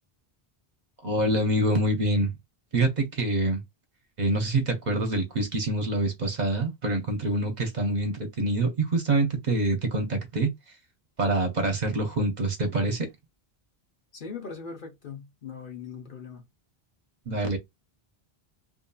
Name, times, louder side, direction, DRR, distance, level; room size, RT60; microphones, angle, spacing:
voice 1, 1.0-2.3 2.7-3.6 4.2-10.5 11.2-13.1 17.3-17.6, right 2 dB, 50° right, 0.8 m, -26 dB
voice 2, 14.1-16.4, left 5 dB, 55° left, 1.0 m, -40 dB
2.6 x 2.6 x 2.2 m
omnidirectional pair, 1.0 m